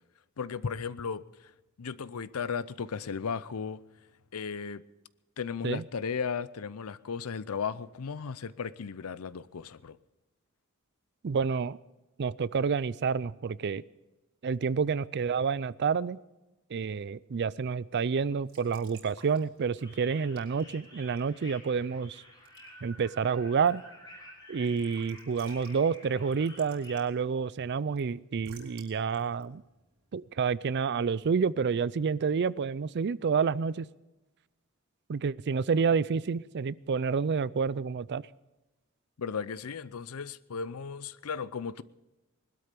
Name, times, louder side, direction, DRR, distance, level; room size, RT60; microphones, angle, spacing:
voice 1, 0.4-1.5 1.8-3.8 4.3-4.8 5.4-10.0 39.2-41.8, left 6 dB, 85° left, 0.6 m, -35 dB
voice 2, 11.2-11.8 12.2-13.8 14.4-16.2 16.7-22.2 22.8-23.8 24.5-29.6 30.1-33.9 35.1-38.2, right 5 dB, 50° right, 0.4 m, -29 dB
Raindrop / Drip / Trickle dribble, 18.2-30.7, right 5 dB, 75° right, 4.1 m, -60 dB
sound 1, 19.8-27.0, equal, 20° left, 5.3 m, -51 dB
20.5 x 12.5 x 5.2 m
head